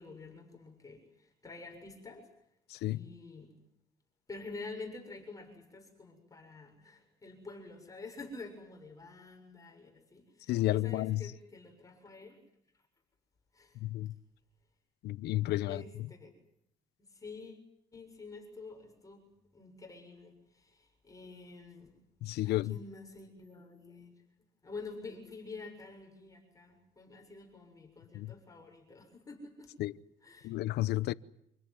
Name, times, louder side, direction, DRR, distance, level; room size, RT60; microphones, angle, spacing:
voice 1, 0.0-2.3 2.9-3.6 4.3-12.4 13.5-13.8 15.7-16.4 17.0-17.6 17.9-21.9 22.4-24.2 24.6-29.7 30.2-30.5, left 3 dB, 20° left, 7.0 m, -48 dB
voice 2, 10.5-11.2 13.8-14.1 15.0-15.8 22.2-22.8 28.1-28.3 29.8-29.9 30.4-31.1, left 16 dB, 80° left, 0.9 m, -31 dB
27.0 x 17.5 x 9.6 m
cardioid pair, 110°, 17 cm